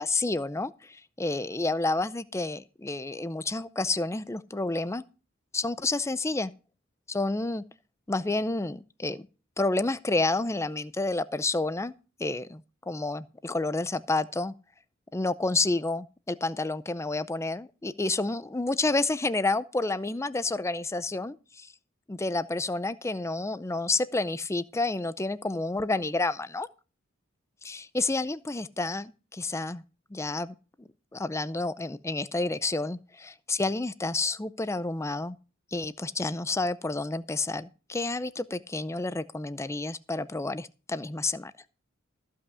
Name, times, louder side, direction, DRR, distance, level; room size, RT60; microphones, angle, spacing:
voice 1, 0.0-5.0 5.5-6.5 7.1-7.6 8.1-9.3 9.6-11.9 12.2-14.5 15.1-21.7 22.1-26.7 27.6-29.8 30.1-35.4 35.7-41.5, left 2 dB, 15° left, 0.5 m, -30 dB
14.5 x 5.6 x 6.8 m
head